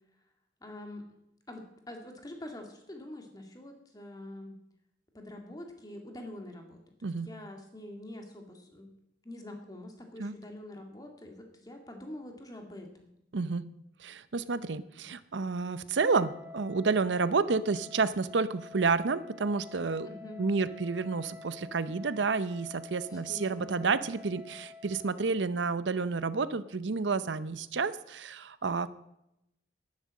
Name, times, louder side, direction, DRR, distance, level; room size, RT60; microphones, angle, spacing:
voice 1, 0.6-1.1 1.5-4.5 5.1-8.9 9.2-13.1 20.0-20.4 23.1-24.0, left 1 dB, 20° left, 3 dB, 2.0 m, -45 dB
voice 2, 13.3-13.7 14.0-20.1 20.4-28.9, right 4 dB, 80° right, 15 dB, 0.7 m, -30 dB
Wind instrument woodwind instrument, 15.9-25.3, left 4 dB, 15° right, 1.0 m, -49 dB
10.5 x 10.5 x 7.5 m, 0.84 s
head